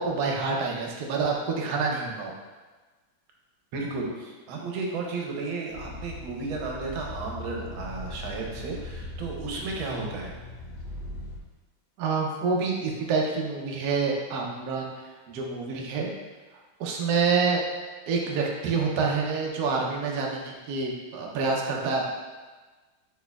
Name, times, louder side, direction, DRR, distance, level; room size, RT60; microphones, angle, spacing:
voice 1, 0.0-2.4 12.0-16.1 16.8-17.6 18.1-22.0, right 4 dB, 65° right, -1 dB, 1.1 m, -27 dB
voice 2, 3.7-10.3, right 3 dB, 85° right, 0 dB, 1.5 m, -33 dB
sound 1, 5.7-11.4, left 2 dB, 70° left, 1.1 m, -39 dB
5.2 x 4.4 x 2.3 m, 1.3 s
omnidirectional pair, 2.2 m